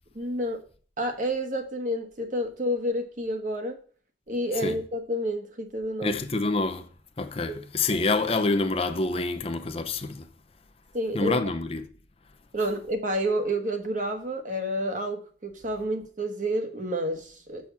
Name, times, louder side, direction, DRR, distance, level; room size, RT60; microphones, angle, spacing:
voice 1, 0.1-0.6 1.0-3.8 4.3-6.2 7.5-7.6 10.9-11.4 12.5-17.7, equal, 45° right, 1.4 m, -29 dB
voice 2, 6.0-6.9 7.2-10.3 11.1-11.9, left 3 dB, 30° left, 0.6 m, -27 dB
6.3 x 6.0 x 7.0 m
head